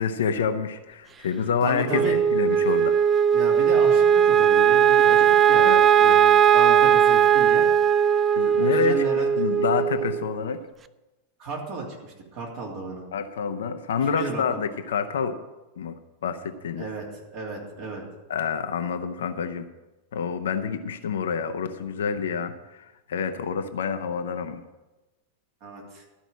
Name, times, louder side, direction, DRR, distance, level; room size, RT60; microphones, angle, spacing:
voice 1, 0.0-2.9 5.0-5.1 5.6-6.2 8.4-10.6 13.1-15.4 15.8-15.9 16.2-16.9 18.3-19.6 20.1-24.6, left 6 dB, 60° left, 8 dB, 0.8 m, -28 dB
voice 2, 1.6-2.2 3.3-7.6 8.6-9.3 11.4-13.1 14.0-14.6 16.8-17.0 17.3-18.0 25.6-26.0, right 4 dB, 45° right, -2 dB, 3.2 m, -33 dB
Wind instrument woodwind instrument, 1.9-10.4, right 8 dB, 20° right, 0.4 m, -18 dB
13.0 x 5.1 x 8.7 m, 1.1 s
figure-of-eight pair, 90°, 0 cm